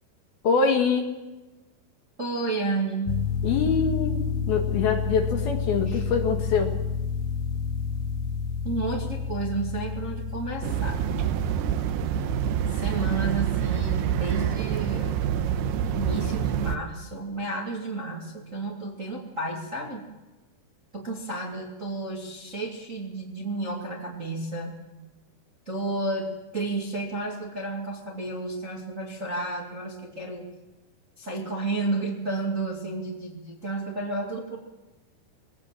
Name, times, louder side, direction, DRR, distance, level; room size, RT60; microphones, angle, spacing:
voice 1, 0.4-1.1 3.4-6.8, left 5 dB, 60° left, 3 dB, 3.3 m, -24 dB
voice 2, 2.2-3.2 5.9-6.1 8.6-11.0 12.7-15.2 15.8-20.0 20.9-24.8 25.7-30.4 31.2-34.6, right 2 dB, 25° right, -1 dB, 1.8 m, -32 dB
sound 1, 3.1-11.7, left 5 dB, 90° left, 3.4 m, -30 dB
sound 2, 10.6-16.8, right 9 dB, 75° right, 2.7 m, -26 dB
22.5 x 17.5 x 7.6 m, 1.1 s
omnidirectional pair, 5.3 m